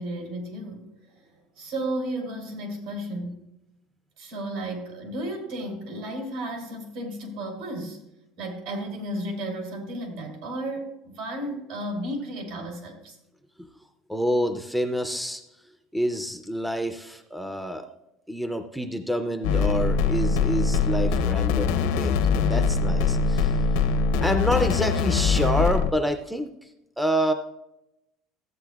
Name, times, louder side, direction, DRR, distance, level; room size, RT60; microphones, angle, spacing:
voice 1, 0.0-3.4 4.2-8.0 8.4-13.2, right 1 dB, 70° right, 2 dB, 3.1 m, -33 dB
voice 2, 14.1-15.4 15.9-17.9 18.3-23.6 24.2-26.5 27.0-27.3, equal, ahead, 6 dB, 0.4 m, -27 dB
sound 1, 19.4-25.9, left 5 dB, 90° left, 0.7 m, -23 dB
14.0 x 8.3 x 2.3 m, 0.88 s
cardioid pair, 160°, 0 cm